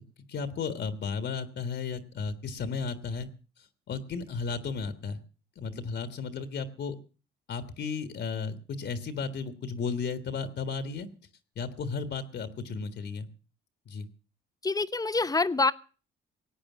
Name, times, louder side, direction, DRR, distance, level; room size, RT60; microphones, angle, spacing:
voice 1, 0.3-3.3 3.9-5.2 5.6-6.9 7.5-11.1 11.5-13.3 13.9-14.1, left 5 dB, 55° left, 10 dB, 1.6 m, -34 dB
voice 2, 14.6-15.7, left 3 dB, 15° left, 15 dB, 0.8 m, -26 dB
18.0 x 8.7 x 7.3 m, 0.39 s
cardioid pair, 95°, 21 cm